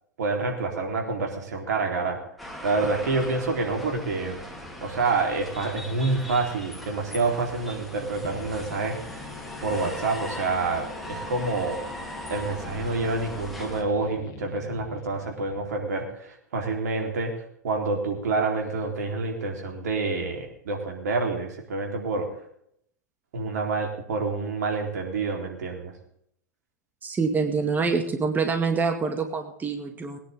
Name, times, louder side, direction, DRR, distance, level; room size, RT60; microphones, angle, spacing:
voice 1, 0.2-2.2 2.6-4.4 4.8-9.3 9.6-11.8 12.3-17.3 17.6-22.3 23.3-25.9, right 3 dB, 70° right, 2 dB, 4.0 m, -28 dB
sound 1, 2.4-13.8, equal, ahead, 3.2 m, -39 dB
sound 2, 8.2-15.9, left 8 dB, 45° left, 2.0 m, -45 dB
voice 2, 27.0-30.2, right 4 dB, 20° right, 5 dB, 2.2 m, -26 dB
22.0 x 10.0 x 3.7 m, 0.70 s
hypercardioid pair, 95°, 9 cm